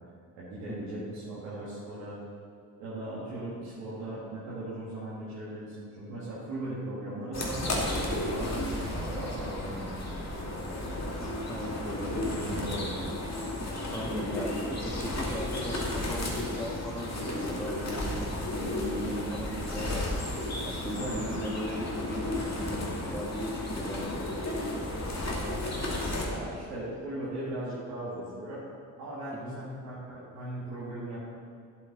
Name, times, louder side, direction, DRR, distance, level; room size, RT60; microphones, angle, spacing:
voice 1, 0.3-2.2 2.8-10.8 11.8-13.1 20.9-21.3 25.3-28.6 29.0-31.2, right 1 dB, 75° right, -10 dB, 2.2 m, -38 dB
sound 1, 7.3-26.3, left 1 dB, 35° left, 2.4 m, -33 dB
voice 2, 11.5-11.8 13.9-20.3 20.6-24.2 29.3-29.6, equal, 5° left, 0 dB, 1.8 m, -38 dB
11.5 x 7.2 x 4.1 m, 2.2 s
hypercardioid pair, 40°, 47 cm